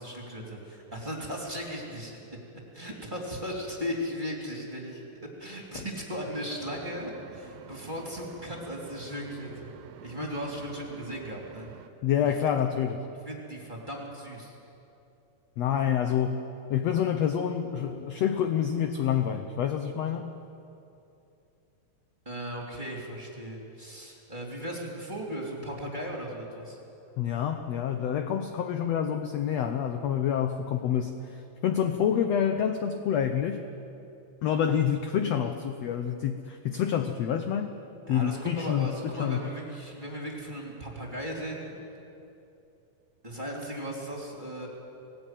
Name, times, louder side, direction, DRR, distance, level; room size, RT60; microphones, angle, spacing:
voice 1, 0.0-2.2 2.7-5.0 5.4-9.7 10.0-11.7 13.3-14.6 22.2-26.8 38.1-41.8 43.2-44.7, equal, 15° right, -2 dB, 2.7 m, -37 dB
sound 1, 6.6-11.9, right 9 dB, 80° right, 2.5 m, -49 dB
voice 2, 12.0-13.0 15.6-16.4 16.7-20.3 27.2-33.6 34.4-37.8 38.1-39.5, left 8 dB, 75° left, 7 dB, 1.5 m, -27 dB
19.0 x 18.0 x 9.1 m, 2.8 s
omnidirectional pair, 4.0 m